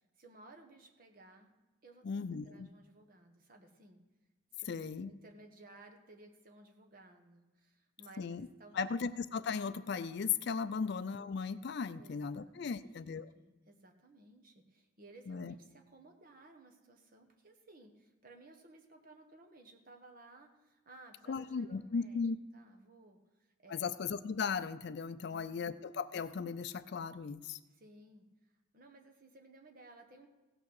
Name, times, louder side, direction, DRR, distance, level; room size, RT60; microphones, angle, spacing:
voice 1, 0.0-1.5 1.8-4.0 4.5-4.7 5.0-9.0 10.7-10.9 12.0-13.1 13.3-22.2 22.5-23.8 25.3-25.7 27.7-28.3 28.7-30.3, right 2 dB, 40° right, 3 dB, 1.3 m, -58 dB
voice 2, 2.0-2.7 4.7-5.1 8.2-8.5 8.7-13.3 15.3-15.5 21.3-22.4 23.7-27.6, left 5 dB, 50° left, 14 dB, 0.4 m, -37 dB
16.5 x 6.0 x 6.5 m, 1.1 s
head